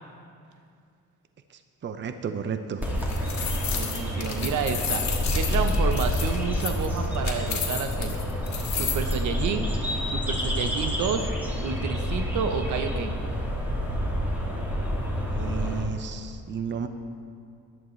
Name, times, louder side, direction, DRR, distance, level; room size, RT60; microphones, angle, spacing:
voice 1, 1.8-2.8 15.3-16.9, right 6 dB, 40° right, 9 dB, 0.6 m, -32 dB
sound 1, 2.8-9.1, left 7 dB, 60° left, 2.0 m, -32 dB
sound 2, 2.8-15.8, equal, 5° right, 2.2 m, -28 dB
voice 2, 3.7-5.0 5.3-8.2 8.7-9.7 10.1-11.3 11.6-13.1, right 6 dB, 75° right, 7 dB, 0.9 m, -30 dB
15.0 x 11.0 x 3.2 m, 2.3 s
cardioid pair, 90°, 30 cm